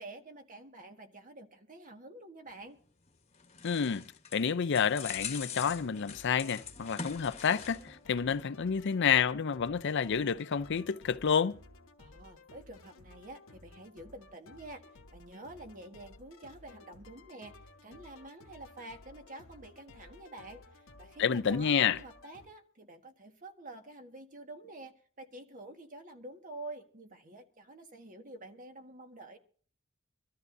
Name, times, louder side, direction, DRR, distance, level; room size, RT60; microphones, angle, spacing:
voice 1, 0.0-2.8 12.0-14.8 15.1-17.5 17.8-29.4, right 2 dB, 40° right, 1.6 m, -48 dB
sound 1, 3.1-8.0 8.3-8.4, left 6 dB, 30° left, 1.3 m, -43 dB
voice 2, 3.6-4.0 4.3-11.6 21.2-22.0, left 7 dB, 60° left, 0.5 m, -29 dB
sound 2, 5.1-22.5, left 2 dB, 90° left, 1.3 m, -56 dB
24.5 x 13.5 x 2.7 m
head